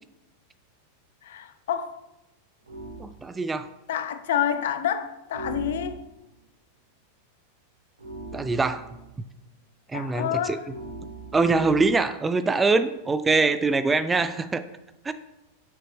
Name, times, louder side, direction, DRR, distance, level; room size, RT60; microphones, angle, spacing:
voice 1, 1.2-2.0 3.9-6.0 9.9-10.7, left 9 dB, 55° left, 10 dB, 0.6 m, -28 dB
sound 1, 2.7-3.1 5.3-6.3 8.0-9.1 10.6-12.0, right 3 dB, 75° right, 1.9 m, -40 dB
voice 2, 3.0-3.7 8.3-8.9 9.9-10.6 11.3-14.6 15.0-15.1, right 3 dB, 15° right, 12 dB, 0.3 m, -23 dB
6.6 x 6.1 x 3.4 m, 0.93 s
figure-of-eight pair, 90°, 0 cm